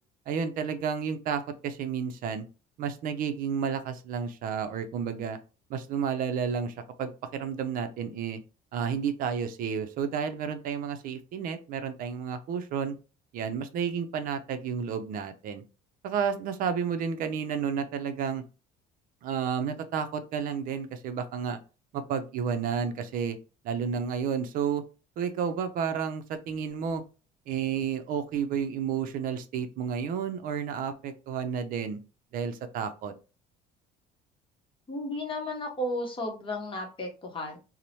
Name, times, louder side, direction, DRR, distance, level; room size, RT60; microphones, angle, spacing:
voice 1, 0.3-2.4 2.8-5.4 5.7-8.4 8.7-12.9 13.3-15.6 16.0-18.4 19.2-21.6 21.9-23.4 23.6-24.8 25.2-27.0 27.5-32.0 32.3-33.1, right 7 dB, 55° right, 9 dB, 0.4 m, -31 dB
voice 2, 34.9-37.6, left 1 dB, 30° left, 3 dB, 0.8 m, -33 dB
2.9 x 2.0 x 2.7 m, 0.33 s
cardioid pair, 125°, 17 cm